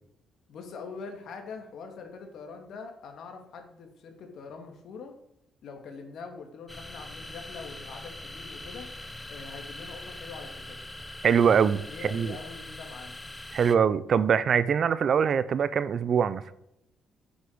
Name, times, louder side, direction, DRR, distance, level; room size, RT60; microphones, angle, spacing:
voice 1, 0.5-5.1 5.6-8.9 9.3-10.8 11.9-13.2, left 5 dB, 70° left, 2.6 m, -43 dB
sound 1, 6.7-13.8, left 1 dB, 10° left, 0.9 m, -42 dB
voice 2, 11.2-12.4 13.5-16.4, right 7 dB, 55° right, 0.7 m, -23 dB
8.2 x 8.2 x 8.2 m
cardioid pair, 90°, 0 cm